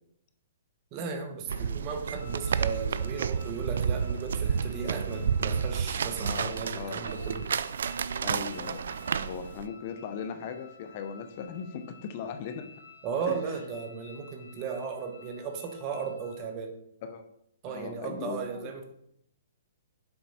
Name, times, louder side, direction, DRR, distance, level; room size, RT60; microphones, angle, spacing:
voice 1, 0.9-7.5 13.0-16.8 17.6-18.9, right 5 dB, 30° right, 6 dB, 0.9 m, -36 dB
sound 1, 1.5-9.7, right 7 dB, 75° right, 0.3 m, -31 dB
sound 2, 2.1-16.4, left 5 dB, 80° left, 1.9 m, -53 dB
voice 2, 6.2-7.0 8.2-9.0 9.2-12.7 13.3-13.4 17.0-17.2 17.7-18.7, left 6 dB, 45° left, 8 dB, 0.8 m, -38 dB
6.9 x 4.5 x 4.2 m, 0.73 s
hypercardioid pair, 145°, 0 cm